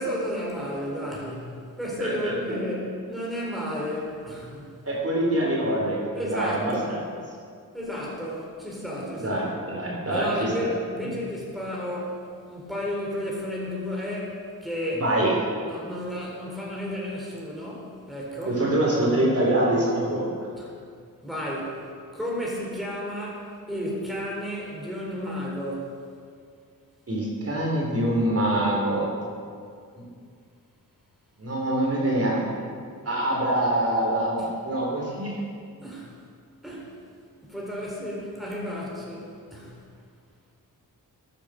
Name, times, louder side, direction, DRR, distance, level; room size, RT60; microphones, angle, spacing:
voice 1, 0.0-4.7 6.1-6.9 7.7-9.4 10.1-12.2 12.5-15.0 15.6-18.6 20.6-20.7 21.2-21.8 22.1-25.9 35.8-36.1 36.6-36.9 37.4-39.8, equal, ahead, -4 dB, 3.9 m, -32 dB
voice 2, 2.0-2.6 4.8-7.0 9.2-10.5 15.0-15.3 18.5-20.3 27.1-29.1 31.4-32.7 33.0-35.4, right 1 dB, 40° right, -4 dB, 4.0 m, -25 dB
13.5 x 8.7 x 6.5 m, 2.2 s
cardioid pair, 85°, 35 cm